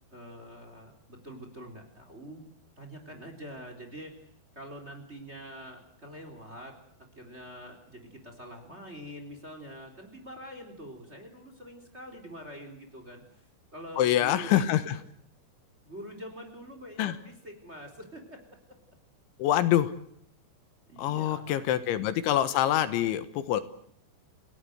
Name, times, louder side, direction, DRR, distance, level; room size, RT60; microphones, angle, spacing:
voice 1, 0.1-2.4 2.8-4.3 4.5-6.8 7.1-13.2 13.7-14.7 15.8-18.4 20.9-21.8, equal, 15° right, 5 dB, 3.4 m, -45 dB
voice 2, 14.0-15.0 17.0-17.2 19.4-19.9 21.0-23.6, left 12 dB, 80° left, 12 dB, 3.6 m, -25 dB
29.5 x 17.5 x 8.0 m, 0.67 s
omnidirectional pair, 5.4 m